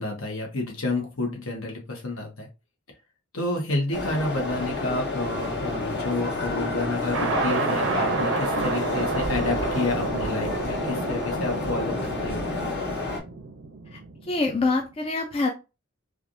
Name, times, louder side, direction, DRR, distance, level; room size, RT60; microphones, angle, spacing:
voice 1, 0.0-2.5 3.3-12.5, left 2 dB, 70° left, 1 dB, 1.1 m, -30 dB
sound 1, 3.9-13.2, left 3 dB, 50° left, 1.6 m, -30 dB
sound 2, 7.1-14.7, right 4 dB, 65° right, 0.5 m, -30 dB
voice 2, 14.3-15.5, left 3 dB, 25° left, 2 dB, 0.3 m, -25 dB
3.3 x 2.4 x 2.6 m, 0.28 s
head